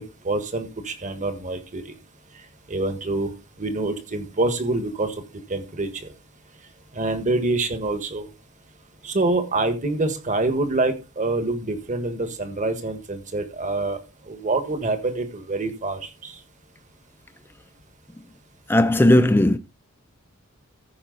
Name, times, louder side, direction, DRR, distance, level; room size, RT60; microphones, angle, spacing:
voice 1, 0.0-1.9 2.7-3.3 3.6-5.1 5.5-6.1 6.9-8.3 9.0-14.0 14.3-16.3, right 2 dB, 35° right, 1.5 m, -26 dB
voice 2, 18.7-19.6, left 1 dB, 10° left, 0.4 m, -16 dB
14.5 x 5.3 x 4.0 m
head